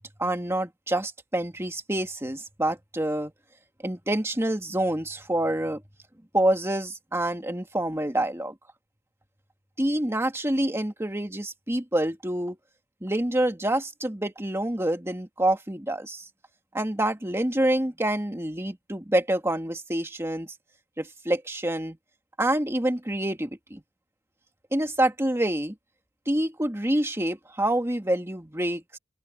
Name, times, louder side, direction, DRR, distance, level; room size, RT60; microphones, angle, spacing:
voice 1, 0.2-3.3 3.8-5.8 6.3-8.5 9.8-12.6 13.0-16.3 16.7-20.5 21.0-22.0 22.4-23.8 24.7-25.8 26.3-29.0, right 1 dB, 15° right, 1.8 m, -27 dB
open air
head